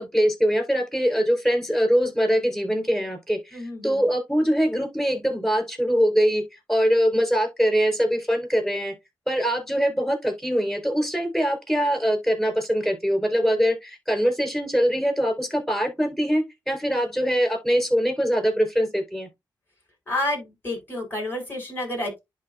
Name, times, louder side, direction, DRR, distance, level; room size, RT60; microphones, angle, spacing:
voice 1, 0.0-6.4 6.7-8.9 9.3-19.3, equal, 10° left, 4.2 m, -23 dB
voice 2, 3.5-4.0 20.1-22.2, left 1 dB, 25° left, 4.7 m, -30 dB
11.0 x 3.6 x 2.5 m
cardioid pair, 55°, 8 cm